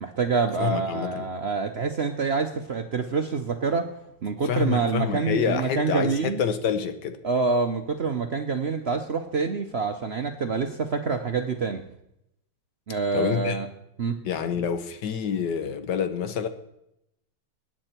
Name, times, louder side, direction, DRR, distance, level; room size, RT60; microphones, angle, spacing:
voice 1, 0.0-3.9 4.2-6.4 7.2-11.8 12.9-13.7 14.0-14.2, right 5 dB, 50° right, 5 dB, 0.7 m, -26 dB
voice 2, 0.6-1.2 4.4-7.2 13.1-13.6 14.2-16.5, left 7 dB, 70° left, 10 dB, 1.5 m, -27 dB
20.0 x 9.0 x 4.4 m, 0.82 s
omnidirectional pair, 1.9 m